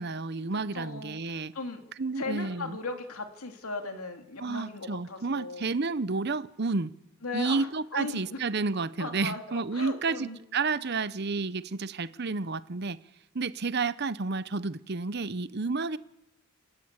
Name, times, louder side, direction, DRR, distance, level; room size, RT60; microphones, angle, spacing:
voice 1, 0.0-1.5 2.0-2.8 4.4-6.9 7.3-13.0 13.3-16.0, right 4 dB, 50° right, 0.8 m, -31 dB
voice 2, 0.7-1.8 2.2-5.7 7.2-8.4 9.0-10.4, left 3 dB, 85° left, 2.7 m, -37 dB
28.5 x 14.0 x 8.2 m
head